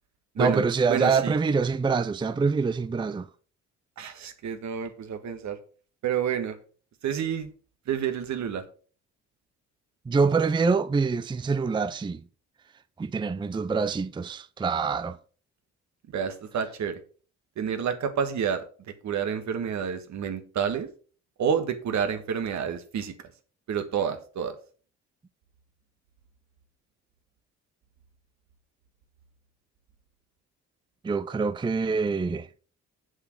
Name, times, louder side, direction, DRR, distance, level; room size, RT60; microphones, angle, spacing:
voice 1, 0.4-3.3 10.1-12.2 13.0-15.2 31.0-32.5, right 4 dB, 15° right, 0.5 m, -25 dB
voice 2, 0.9-1.3 4.0-5.6 6.0-6.5 7.0-7.5 7.9-8.6 16.1-17.0 17.6-18.6 19.0-20.9 21.4-23.1 23.7-24.5, right 7 dB, 65° right, 1.6 m, -29 dB
7.2 x 6.4 x 6.1 m
cardioid pair, 90°, 30 cm